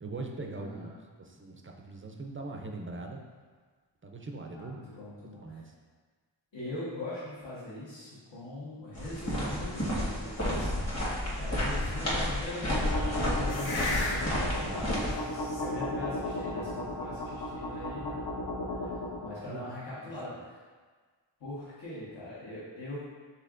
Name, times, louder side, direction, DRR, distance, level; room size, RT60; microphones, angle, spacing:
voice 1, 0.0-0.9 1.2-3.2 4.0-4.8 5.3-5.7 14.4-14.9 18.8-18.9 19.4-19.7 20.0-20.4, right 3 dB, 30° right, 2 dB, 0.4 m, -42 dB
voice 2, 0.6-0.9 4.5-5.6 6.5-18.2 18.8-18.9 19.2-20.6 21.4-23.1, left 1 dB, 70° left, -10 dB, 1.3 m, -41 dB
sound 1, 8.9-15.1, equal, 35° left, 1.3 m, -31 dB
sound 2, 12.7-19.3, left 1 dB, 55° left, 0.7 m, -34 dB
5.5 x 3.5 x 2.5 m, 1.5 s
wide cardioid pair, 120°, 46 cm